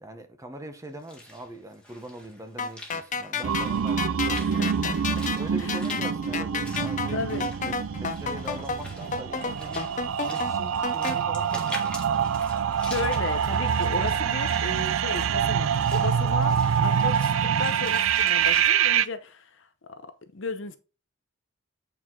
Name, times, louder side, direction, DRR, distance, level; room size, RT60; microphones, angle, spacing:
voice 1, 0.0-4.8 5.4-9.9 10.2-12.3, right 1 dB, 15° right, 0.9 m, -42 dB
Walk footsteps / Splash splatter, 0.8-18.7, left 1 dB, 5° left, 1.8 m, -45 dB
sound 1, 2.6-11.2, left 5 dB, 40° left, 0.6 m, -31 dB
sound 2, 3.4-19.0, right 7 dB, 85° right, 0.4 m, -26 dB
voice 2, 4.3-5.2 5.6-5.9 7.1-7.4 12.8-17.1 17.4-20.0 20.3-20.8, left 3 dB, 65° left, 0.9 m, -34 dB
8.4 x 4.6 x 3.8 m
head